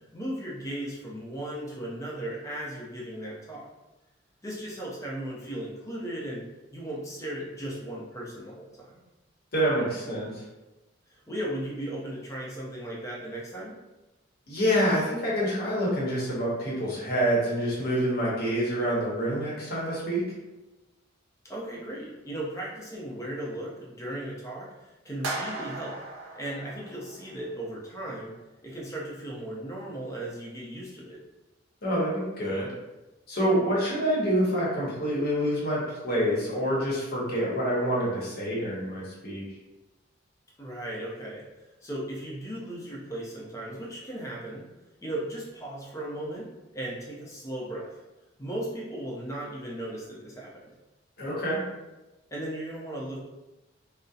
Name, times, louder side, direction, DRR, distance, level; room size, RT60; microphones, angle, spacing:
voice 1, 0.1-3.7 4.4-6.4 6.7-8.9 11.1-13.7 21.4-26.0 26.4-28.3 28.6-31.2 40.6-44.6 45.0-46.5 46.7-48.0 48.4-50.6 52.3-53.2, right 1 dB, 15° left, -4 dB, 0.5 m, -36 dB
voice 2, 9.5-10.4 14.5-20.2 31.8-32.7 33.3-39.4 51.2-51.6, equal, 50° left, -5 dB, 0.8 m, -27 dB
sound 1, 25.2-27.5, right 2 dB, 85° right, 0.5 m, -37 dB
2.6 x 2.0 x 2.3 m, 1.1 s
head